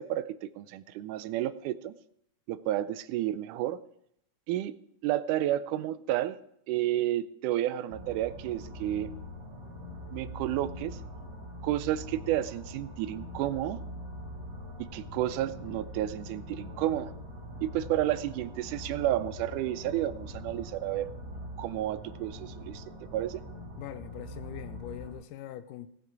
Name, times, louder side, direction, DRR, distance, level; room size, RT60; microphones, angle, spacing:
voice 1, 0.0-1.9 2.5-3.8 4.5-4.8 5.0-6.4 6.7-9.1 10.1-11.0 11.6-13.8 14.8-17.1 17.6-21.1 21.6-22.8 23.1-23.4, right 13 dB, 80° right, 2.0 m, -31 dB
sound 1, 7.9-25.1, equal, 40° right, 3.8 m, -43 dB
voice 2, 23.8-25.9, left 11 dB, 90° left, 2.3 m, -42 dB
15.5 x 9.2 x 4.7 m
omnidirectional pair, 3.7 m